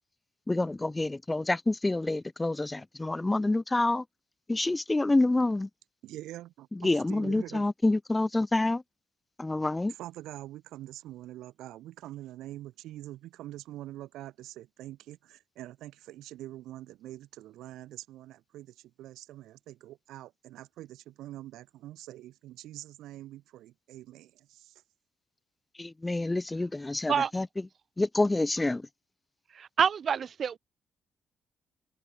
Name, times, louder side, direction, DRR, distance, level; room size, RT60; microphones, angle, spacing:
voice 1, 0.5-4.0 4.5-5.7 6.7-8.8 9.4-9.9 25.8-27.5 28.0-28.8, left 2 dB, 15° left, 0.3 m, -27 dB
voice 2, 6.0-7.7 9.9-24.7, right 14 dB, 85° right, 7.1 m, -45 dB
voice 3, 29.5-30.6, right 7 dB, 50° right, 0.5 m, -27 dB
open air
cardioid pair, 90°, 0 cm